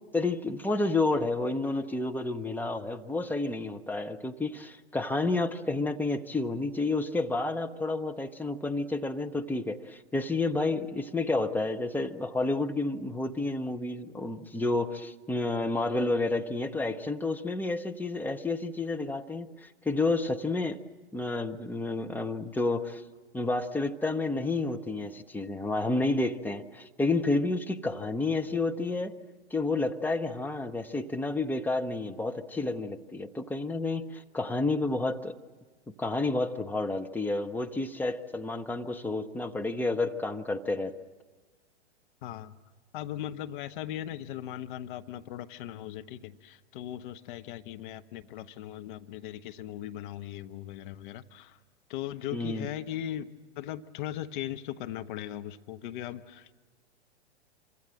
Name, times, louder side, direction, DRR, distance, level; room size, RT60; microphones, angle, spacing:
voice 1, 0.1-20.8 21.1-23.0 23.3-29.1 29.5-35.4 35.9-40.9 52.3-52.7, left 2 dB, 5° left, 5 dB, 0.8 m, -30 dB
voice 2, 42.2-42.5 42.9-51.6 51.9-53.3 53.6-56.5, left 12 dB, 45° left, 9 dB, 1.2 m, -38 dB
26.5 x 25.0 x 7.7 m, 1.4 s
figure-of-eight pair, 110°, 34 cm